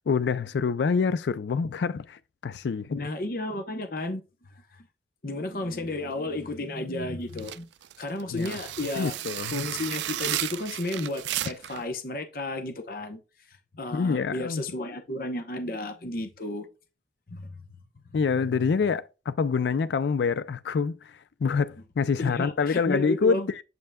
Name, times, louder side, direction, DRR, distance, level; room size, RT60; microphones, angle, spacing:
voice 1, 0.1-3.0 8.3-8.6 9.0-9.6 13.9-14.6 18.1-23.6, left 5 dB, 80° left, 0.4 m, -26 dB
voice 2, 2.9-4.9 5.2-7.7 8.0-9.1 9.5-13.2 13.5-16.7 17.3-17.5 22.2-23.5, left 2 dB, 55° left, 0.8 m, -33 dB
sound 1, 7.3-11.8, right 13 dB, 85° right, 0.4 m, -33 dB
7.7 x 5.4 x 2.2 m
head